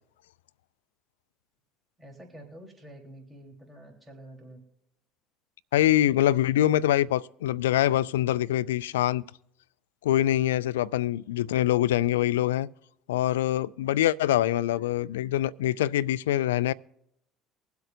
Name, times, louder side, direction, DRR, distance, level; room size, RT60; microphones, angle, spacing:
voice 1, 2.0-4.6, right 1 dB, 15° right, 3.9 m, -48 dB
voice 2, 5.7-9.2 10.0-12.7 13.1-16.7, left 13 dB, 85° left, 0.3 m, -24 dB
24.0 x 8.0 x 2.6 m
hypercardioid pair, 70°, 0 cm